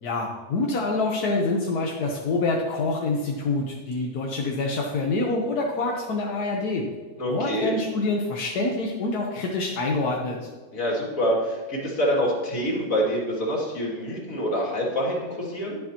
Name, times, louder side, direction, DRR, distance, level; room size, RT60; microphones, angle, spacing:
voice 1, 0.0-6.8 7.3-10.5, left 3 dB, 85° left, -1 dB, 1.6 m, -26 dB
voice 2, 7.2-7.8 10.7-15.8, equal, 60° left, -3 dB, 2.9 m, -26 dB
11.0 x 10.5 x 3.0 m, 1.4 s
omnidirectional pair, 1.6 m